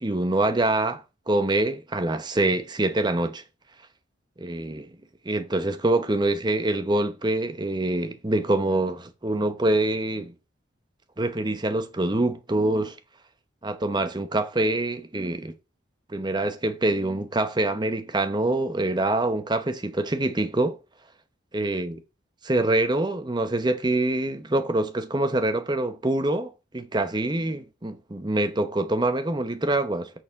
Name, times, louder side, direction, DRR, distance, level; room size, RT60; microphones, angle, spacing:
voice 1, 0.0-3.4 4.4-5.0 5.2-10.3 11.2-13.0 13.6-15.5 16.1-20.8 21.5-22.0 22.4-30.1, right 2 dB, 20° right, 0.8 m, -25 dB
6.4 x 6.3 x 6.1 m
head